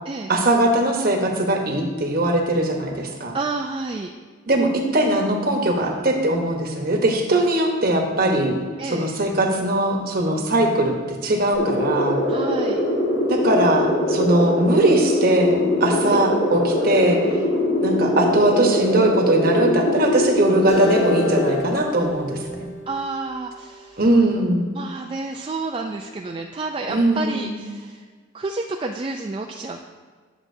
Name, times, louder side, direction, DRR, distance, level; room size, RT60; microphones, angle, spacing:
voice 1, 0.3-3.4 4.5-8.6 8.8-12.2 13.3-17.2 17.8-22.7 24.0-24.6 26.9-27.6, right 1 dB, 50° right, 2 dB, 1.0 m, -20 dB
voice 2, 3.3-4.1 8.8-9.1 12.3-12.8 16.1-16.2 22.9-24.0 24.7-28.0 28.3-29.9, right 3 dB, 25° right, 2 dB, 0.3 m, -30 dB
sound 1, 11.5-21.5, left 1 dB, 65° left, 1.6 m, -22 dB
Acoustic guitar, 20.7-24.0, left 2 dB, 85° left, 1.1 m, -31 dB
10.0 x 7.1 x 2.7 m, 1.5 s
head